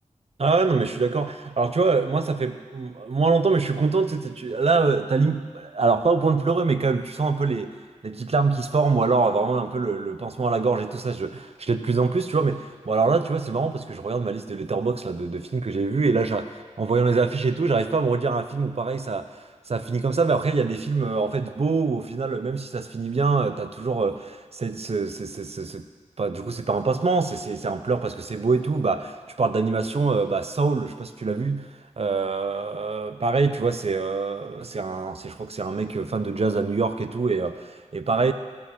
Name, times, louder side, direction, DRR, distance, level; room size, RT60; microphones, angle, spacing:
voice 1, 0.4-7.7 8.0-25.8 26.2-31.7 32.0-38.3, right 4 dB, 50° right, 9 dB, 0.7 m, -24 dB
16.0 x 6.0 x 6.3 m, 1.5 s
wide cardioid pair, 55°, 13 cm